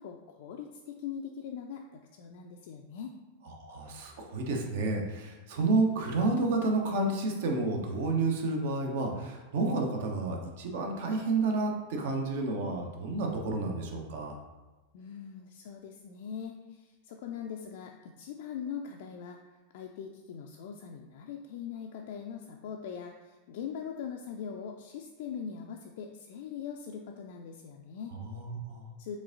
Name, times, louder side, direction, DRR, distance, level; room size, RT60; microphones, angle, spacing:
voice 1, 0.0-3.2 14.9-19.4 19.7-28.2 29.0-29.2, left 7 dB, 50° left, 2 dB, 0.3 m, -41 dB
voice 2, 3.6-14.4 28.3-28.8, right 3 dB, 55° right, 2 dB, 0.7 m, -30 dB
5.0 x 3.4 x 2.6 m, 1.2 s
figure-of-eight pair, 90°, 0 cm